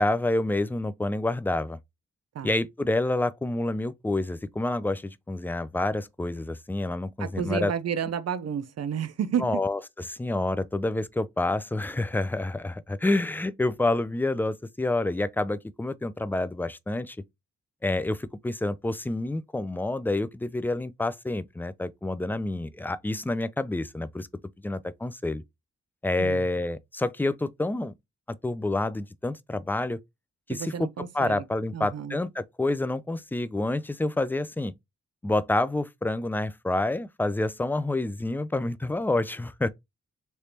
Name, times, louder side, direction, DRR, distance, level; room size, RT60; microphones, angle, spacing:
voice 1, 0.0-1.8 2.4-7.7 9.4-9.8 10.1-17.2 17.8-24.3 24.6-25.4 26.0-27.9 28.3-30.0 30.6-30.9 31.1-34.7 35.2-39.7, left 2 dB, 5° left, 0.3 m, -28 dB
voice 2, 7.2-9.7 26.2-26.4 30.5-31.4 31.7-32.2, right 8 dB, 55° right, 0.6 m, -31 dB
3.3 x 3.0 x 2.8 m
cardioid pair, 65°, 30 cm